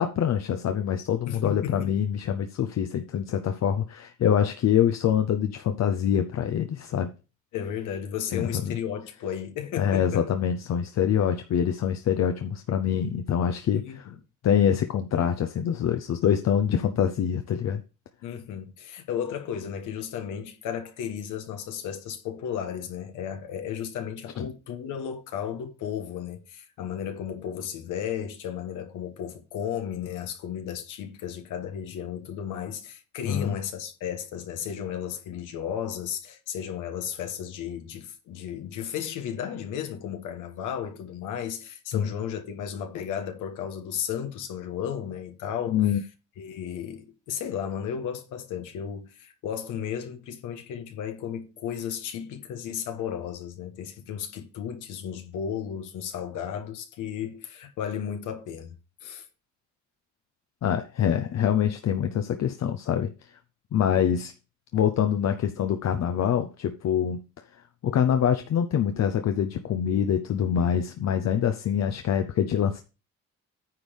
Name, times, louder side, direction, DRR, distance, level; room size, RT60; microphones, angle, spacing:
voice 1, 0.0-7.1 8.3-8.8 9.8-14.1 14.4-17.8 24.4-24.5 33.3-33.6 41.9-42.1 45.7-46.0 60.6-63.1 63.7-64.3 64.7-67.2 67.8-72.8, left 9 dB, 60° left, 0.8 m, -25 dB
voice 2, 1.3-2.0 7.5-10.3 13.7-14.1 18.2-45.8 46.4-58.8 59.0-59.2, left 8 dB, 90° left, 1.4 m, -34 dB
9.6 x 3.5 x 6.3 m
cardioid pair, 90°, 30 cm